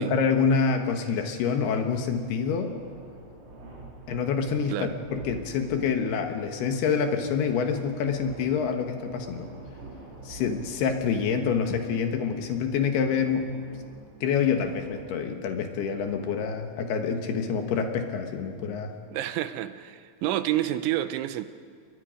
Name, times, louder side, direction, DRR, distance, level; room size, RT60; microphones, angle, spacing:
voice 1, 0.0-2.7 4.1-9.5 10.2-13.5 14.2-18.9, left 6 dB, 70° left, 5 dB, 3.2 m, -27 dB
sound 1, 1.6-15.1, right 2 dB, 30° right, 3.7 m, -47 dB
voice 2, 19.1-21.5, right 13 dB, 85° right, 11 dB, 3.2 m, -29 dB
29.0 x 22.5 x 5.1 m, 2.1 s
omnidirectional pair, 5.2 m